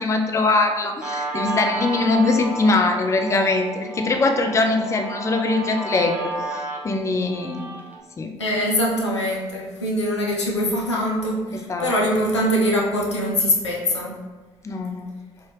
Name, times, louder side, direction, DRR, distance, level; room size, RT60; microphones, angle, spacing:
voice 1, 0.0-7.7 8.2-8.3 11.7-11.9 14.6-15.1, left 3 dB, 20° left, 4 dB, 0.4 m, -22 dB
Guitar, 1.0-8.0, right 2 dB, 10° right, 0.7 m, -31 dB
voice 2, 8.4-14.2, equal, 90° left, -3 dB, 0.5 m, -23 dB
2.6 x 2.5 x 3.2 m, 1.2 s
figure-of-eight pair, 50°, 14 cm